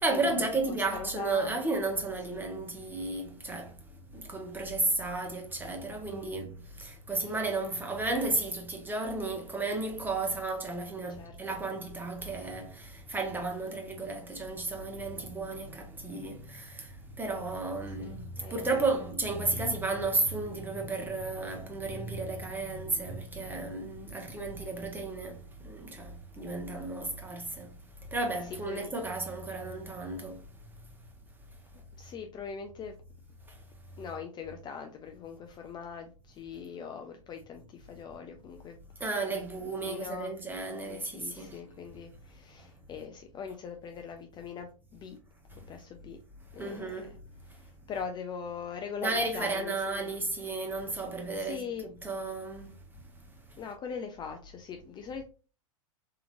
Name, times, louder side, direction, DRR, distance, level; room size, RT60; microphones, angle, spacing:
voice 1, 0.0-3.8 4.1-27.7 28.1-30.4 39.0-41.6 46.6-47.1 49.0-52.7, right 3 dB, 10° right, 0.9 m, -33 dB
voice 2, 0.7-1.6 2.3-2.4 6.1-6.4 7.2-7.4 11.2-11.6 17.9-18.1 18.4-18.9 28.7-29.0 32.0-32.9 34.0-38.8 39.3-40.3 40.9-45.2 45.7-46.2 46.5-47.0 47.5-50.1 51.3-51.9 53.6-55.3, left 6 dB, 25° left, 0.4 m, -41 dB
3.8 x 2.9 x 2.5 m
hypercardioid pair, 110°, 18 cm